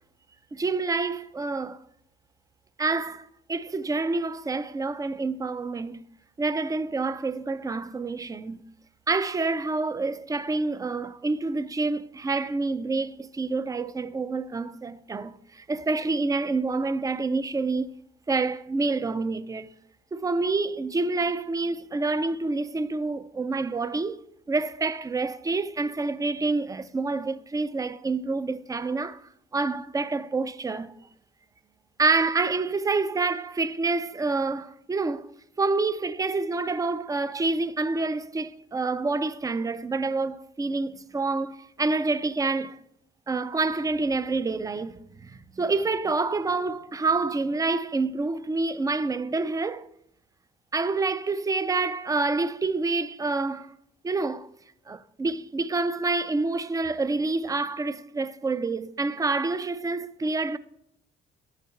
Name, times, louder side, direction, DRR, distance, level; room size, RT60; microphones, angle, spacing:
voice 1, 0.5-1.8 2.8-6.0 6.4-8.6 9.1-17.9 18.3-19.7 20.1-24.2 24.5-29.2 29.5-30.9 32.0-35.3 35.6-42.8 43.3-49.9 50.7-53.7 54.0-54.5 54.9-60.6, right 3 dB, 15° right, 0.3 m, -27 dB
9.0 x 3.3 x 5.6 m
cardioid pair, 90°, 20 cm